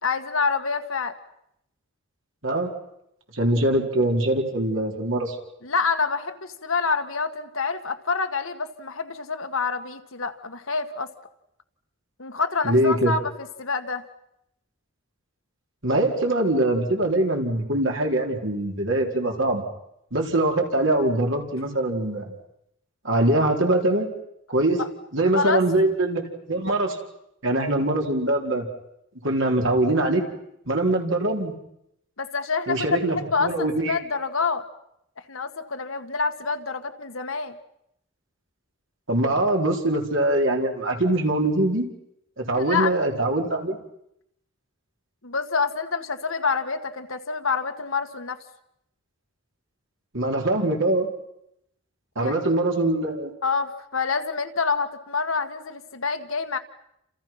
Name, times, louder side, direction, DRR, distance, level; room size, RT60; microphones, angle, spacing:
voice 1, 0.0-1.1 5.6-11.1 12.2-13.2 13.6-14.0 24.8-24.9 25.4-25.6 32.2-32.9 33.3-34.6 35.3-37.6 42.6-43.0 45.2-48.4 52.2-52.3 53.4-56.6, left 4 dB, 75° left, 7 dB, 1.9 m, -27 dB
voice 2, 3.3-5.4 12.6-13.1 15.8-19.6 20.1-22.4 23.0-24.1 24.5-24.8 25.1-26.2 26.5-27.0 27.4-28.7 29.2-30.2 30.7-31.5 32.7-34.0 39.1-41.9 42.4-43.8 50.1-51.1 52.2-53.3, right 1 dB, 65° right, 2 dB, 4.3 m, -23 dB
30.0 x 28.0 x 6.0 m, 0.79 s
head